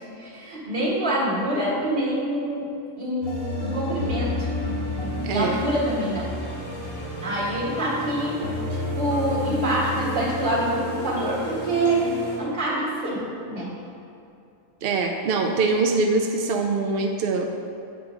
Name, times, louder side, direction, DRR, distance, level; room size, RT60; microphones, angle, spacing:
voice 1, 0.2-2.7 3.0-4.5 5.0-6.3 7.2-8.5 8.7-12.1 12.4-13.7, right 1 dB, 35° right, -7 dB, 1.8 m, -26 dB
sound 1, 3.2-12.4, left 1 dB, 80° left, 2.2 m, -31 dB
voice 2, 5.2-5.6 14.8-17.5, right 3 dB, 70° right, 3 dB, 0.5 m, -23 dB
8.3 x 3.7 x 4.8 m, 2.6 s
omnidirectional pair, 1.5 m